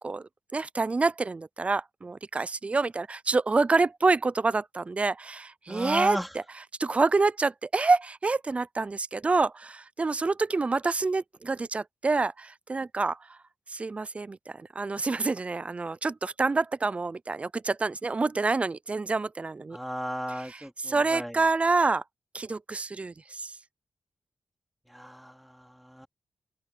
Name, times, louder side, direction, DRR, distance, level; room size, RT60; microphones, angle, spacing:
voice 1, 0.0-6.2 6.8-13.4 13.7-19.8 20.5-20.6 20.9-22.0 22.3-23.5, right 3 dB, 30° right, 0.4 m, -27 dB
voice 2, 5.7-6.3 19.7-21.5 24.9-26.1, equal, ahead, 3.9 m, -35 dB
open air
cardioid pair, 80°, 4 cm